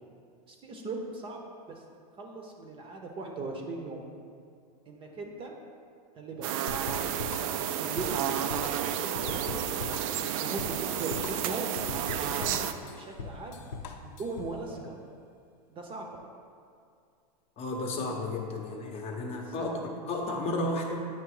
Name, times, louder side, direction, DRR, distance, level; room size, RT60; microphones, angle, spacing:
voice 1, 0.5-1.4 1.7-1.8 2.2-4.0 4.9-5.6 6.2-7.3 7.8-9.6 10.3-11.7 12.2-13.6 14.0-15.0 15.7-16.1 19.5-19.9, right 3 dB, 25° right, 1 dB, 0.7 m, -39 dB
sound 1, 6.4-12.7, right 10 dB, 60° right, 0.4 m, -31 dB
sound 2, 6.7-14.6, left 5 dB, 85° left, 0.7 m, -40 dB
voice 2, 17.6-21.1, left 2 dB, 30° left, 1 dB, 0.8 m, -33 dB
9.0 x 3.1 x 4.8 m, 2.3 s
supercardioid pair, 130°, 20 cm